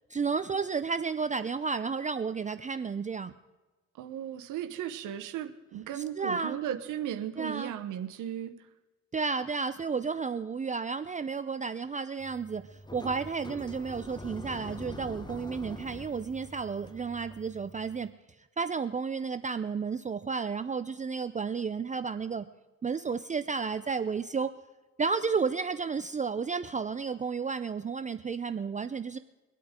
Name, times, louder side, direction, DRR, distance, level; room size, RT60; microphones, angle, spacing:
voice 1, 0.1-3.3 5.9-6.6 7.4-7.7 9.1-18.1 18.6-22.5 22.8-24.5 25.0-29.2, right 5 dB, 25° right, 10 dB, 0.5 m, -32 dB
voice 2, 4.0-8.5, right 10 dB, 85° right, 8 dB, 1.0 m, -36 dB
sound 1, 12.2-18.1, left 2 dB, 15° left, 0.8 m, -45 dB
24.0 x 8.5 x 3.7 m, 1.2 s
cardioid pair, 90°, 30 cm